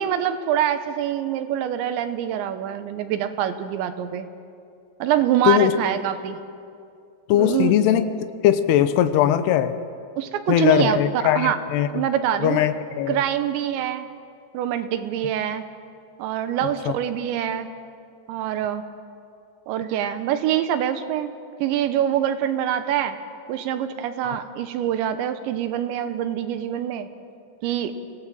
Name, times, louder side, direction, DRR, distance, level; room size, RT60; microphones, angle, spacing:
voice 1, 0.0-4.3 5.0-6.4 7.3-7.8 10.2-11.0 11.4-11.6 11.9-12.6 13.1-14.1 14.5-15.6 16.2-17.7 18.3-18.8 19.7-21.3 21.6-23.2 23.5-27.1 27.6-27.9, right 10 dB, 85° right, 10 dB, 3.3 m, -25 dB
voice 2, 7.3-9.8 10.5-12.1 12.4-13.2 16.9-17.0 24.2-24.4, left 11 dB, 75° left, 10 dB, 2.8 m, -20 dB
25.5 x 17.5 x 7.5 m, 2.4 s
omnidirectional pair, 5.1 m